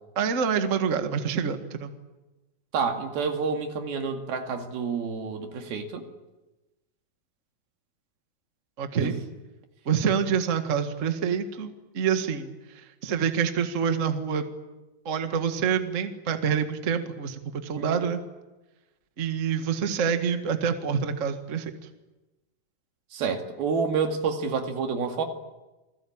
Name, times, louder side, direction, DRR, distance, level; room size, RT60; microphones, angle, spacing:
voice 1, 0.1-1.9 8.8-9.1 9.8-14.5 15.0-18.2 19.2-21.7, right 7 dB, 35° right, 7 dB, 1.2 m, -27 dB
voice 2, 2.7-6.0 9.0-9.1 17.8-18.1 23.1-25.2, right 5 dB, 85° right, 5 dB, 4.1 m, -29 dB
28.5 x 20.0 x 8.7 m, 1.1 s
omnidirectional pair, 4.2 m